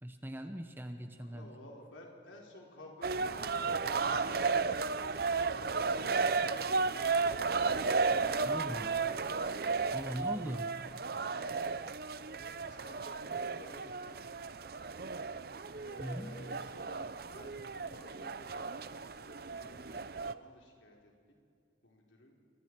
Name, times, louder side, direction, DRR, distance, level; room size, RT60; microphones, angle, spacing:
voice 1, 0.0-1.5 8.4-8.9 9.9-10.7 16.0-16.3, equal, 10° right, 6 dB, 1.0 m, -40 dB
voice 2, 1.1-4.5 5.3-7.7 11.3-11.6 12.4-14.2 15.8-21.1 21.8-22.4, left 1 dB, 80° left, 0 dB, 4.0 m, -54 dB
sound 1, 3.0-20.3, right 4 dB, 50° right, 0.6 m, -34 dB
29.5 x 23.5 x 4.7 m, 2.3 s
head